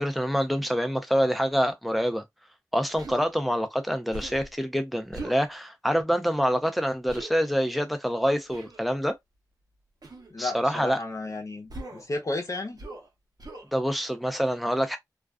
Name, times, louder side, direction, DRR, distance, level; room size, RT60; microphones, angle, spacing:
voice 1, 0.0-2.2 2.7-9.2 10.4-11.0 13.7-15.0, equal, ahead, 0.6 m, -26 dB
Human voice, 3.0-3.2 4.1-4.5 5.1-5.4 7.1-7.3 8.5-8.8 10.0-10.3 11.7-12.1 12.8-13.1 13.4-13.7, right 2 dB, 65° right, 0.9 m, -40 dB
voice 2, 10.3-12.8, left 2 dB, 50° left, 0.8 m, -33 dB
2.4 x 2.3 x 2.3 m
cardioid pair, 50°, 7 cm